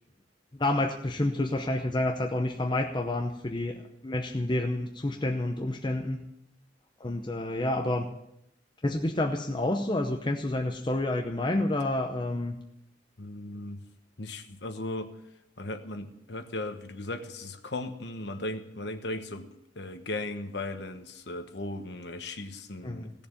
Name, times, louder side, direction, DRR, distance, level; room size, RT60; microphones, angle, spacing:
voice 1, 0.5-6.2 7.0-8.1 8.8-12.6 22.8-23.2, left 1 dB, 25° left, 3 dB, 0.8 m, -29 dB
voice 2, 13.2-13.8 14.2-15.1 15.6-23.3, left 2 dB, 65° left, 8 dB, 1.2 m, -37 dB
16.5 x 7.0 x 9.0 m, 0.81 s
head